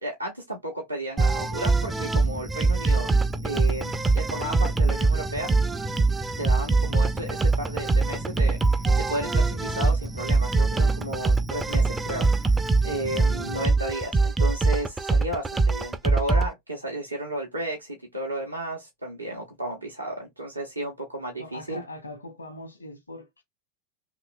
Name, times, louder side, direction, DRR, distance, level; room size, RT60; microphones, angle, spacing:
voice 1, 0.0-3.1 3.4-5.5 6.4-12.4 12.8-21.8, right 1 dB, 85° right, 0.8 m, -33 dB
sound 1, 1.2-16.5, right 3 dB, 15° right, 0.3 m, -23 dB
voice 2, 6.6-7.2 13.3-13.5 21.4-23.4, left 2 dB, 80° left, 1.0 m, -41 dB
3.0 x 2.9 x 2.4 m
figure-of-eight pair, 90°, 0 cm